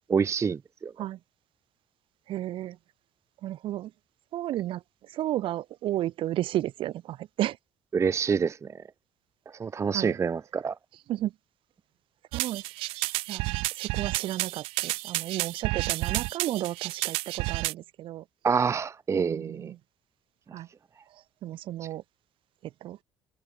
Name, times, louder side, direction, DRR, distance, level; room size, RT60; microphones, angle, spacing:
voice 1, 0.1-0.9 7.9-8.6 9.6-10.7 18.4-19.7, right 6 dB, 30° right, 0.6 m, -26 dB
voice 2, 2.3-2.8 3.4-3.9 4.3-7.6 9.9-10.2 11.1-11.3 12.3-12.6 12.9-13.0 13.3-13.4 13.8-18.2 19.2-19.8 20.5-20.7 21.4-22.0 22.6-23.0, right 14 dB, 70° right, 3.5 m, -33 dB
sound 1, 12.3-17.7, right 24 dB, 85° right, 0.5 m, -30 dB
supercardioid pair, 85°, 9 cm